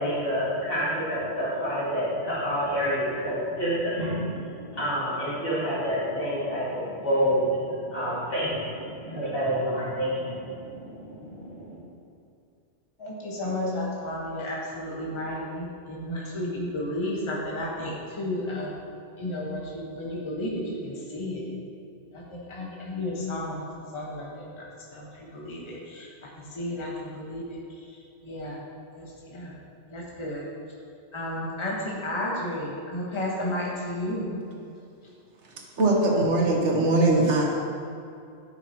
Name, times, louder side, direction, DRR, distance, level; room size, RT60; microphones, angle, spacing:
voice 1, 0.0-11.8, equal, 55° left, -9 dB, 2.1 m, -28 dB
voice 2, 13.0-18.7 19.2-21.4 22.1-23.7 23.9-24.7 24.9-26.1 26.5-28.6 28.9-29.5 29.9-30.4 31.1-34.3, left 1 dB, 25° left, -4 dB, 1.1 m, -33 dB
voice 3, 35.8-37.4, right 2 dB, 80° right, -1 dB, 1.3 m, -21 dB
10.5 x 5.8 x 2.8 m, 2.5 s
omnidirectional pair, 1.2 m